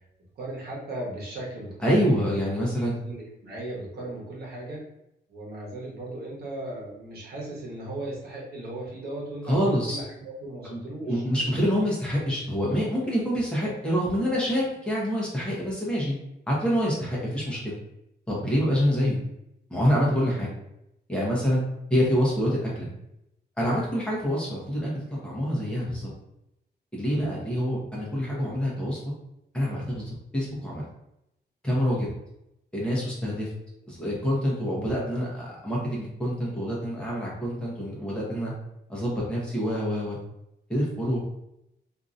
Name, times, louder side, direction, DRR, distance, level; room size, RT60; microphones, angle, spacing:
voice 1, 0.4-2.4 3.0-4.8 5.3-11.2 22.3-22.4, right 1 dB, 60° right, -4 dB, 1.1 m, -37 dB
voice 2, 1.8-3.0 9.4-10.0 10.7-16.1 16.5-17.7 18.3-19.2 19.7-20.5 21.1-21.6 21.9-22.9 23.6-26.1 26.9-29.0 29.5-30.8 31.6-32.1 32.7-33.5 33.9-38.5 38.9-40.2 40.7-41.2, equal, 5° left, -6 dB, 0.9 m, -26 dB
2.8 x 2.6 x 2.5 m, 0.84 s
wide cardioid pair, 150°, 18 cm